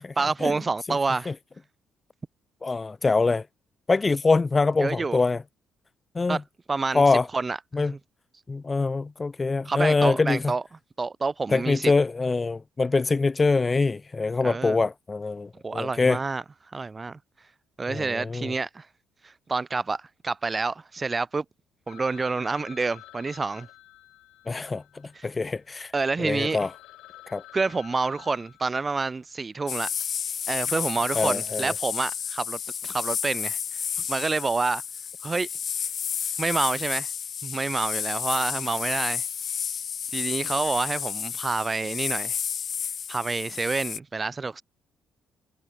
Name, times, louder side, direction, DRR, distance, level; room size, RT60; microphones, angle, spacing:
voice 1, 0.2-1.3 4.8-5.2 6.3-6.4 6.7-7.0 7.3-8.0 9.6-10.6 11.0-11.9 14.4-14.8 15.6-16.4 16.7-17.2 17.8-18.9 19.2-21.4 21.9-23.7 25.1-25.3 25.9-26.6 27.5-29.9 30.5-33.6 34.1-34.8 35.2-35.5 36.4-37.1 37.4-39.2 40.1-42.4 43.1-44.6, right 4 dB, 30° right, 1.2 m, -28 dB
voice 2, 2.6-3.4 3.9-5.4 6.2-6.4 6.9-7.3 7.7-7.9 8.5-10.4 11.5-16.2 17.9-18.5 24.5-24.8 25.2-25.9 26.2-26.7 27.3-27.4 31.2-31.7, left 3 dB, 30° left, 0.3 m, -24 dB
Telephone, 21.9-25.7 26.1-26.2 26.4-29.3, left 16 dB, 70° left, 2.1 m, -50 dB
sound 1, 29.7-44.0, left 8 dB, 55° left, 2.2 m, -31 dB
hypercardioid pair, 50°, 0 cm